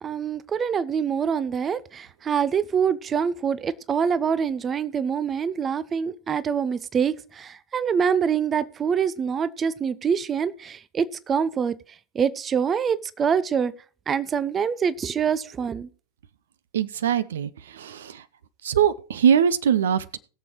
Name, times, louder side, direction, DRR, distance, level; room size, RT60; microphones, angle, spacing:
voice 1, 0.0-11.7 12.1-13.7 14.1-15.9, right 7 dB, 20° right, 17 dB, 0.6 m, -25 dB
voice 2, 16.7-18.2 18.6-20.2, right 8 dB, 60° right, 17 dB, 0.7 m, -22 dB
21.0 x 7.0 x 3.1 m, 0.39 s
figure-of-eight pair, 90°, 0 cm